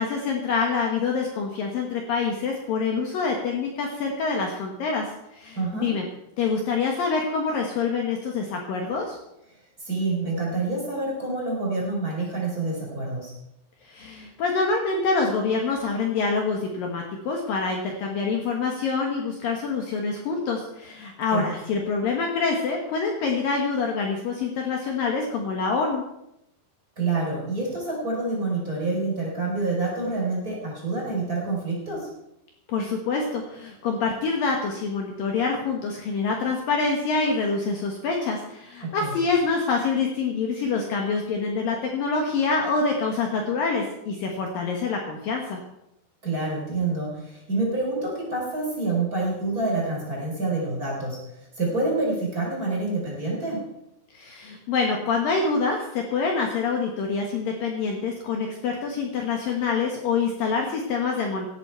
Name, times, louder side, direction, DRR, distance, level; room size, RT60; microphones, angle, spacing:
voice 1, 0.0-6.1 6.4-9.2 13.8-26.0 32.7-45.6 54.1-61.5, left 4 dB, 65° left, 1 dB, 2.7 m, -26 dB
voice 2, 5.6-5.9 9.8-13.3 21.3-21.5 27.0-32.1 38.8-39.1 46.2-51.2 51.6-53.6, right 3 dB, 20° right, -3 dB, 4.2 m, -27 dB
17.0 x 11.0 x 4.5 m, 0.83 s
omnidirectional pair, 5.2 m